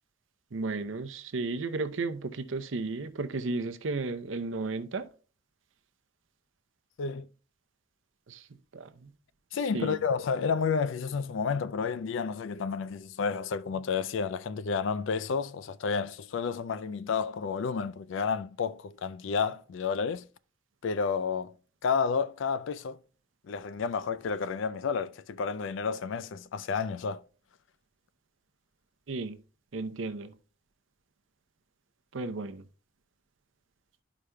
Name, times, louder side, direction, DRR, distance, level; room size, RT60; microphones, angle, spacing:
voice 1, 0.5-5.1 8.3-8.5 8.7-9.1 9.7-10.0 29.1-29.4 29.7-30.3 32.1-32.6, right 3 dB, 70° right, 0.6 m, -34 dB
voice 2, 9.5-20.3 20.8-21.5 21.8-23.0 23.5-27.2, left 5 dB, 70° left, 0.4 m, -31 dB
12.5 x 5.0 x 2.2 m
head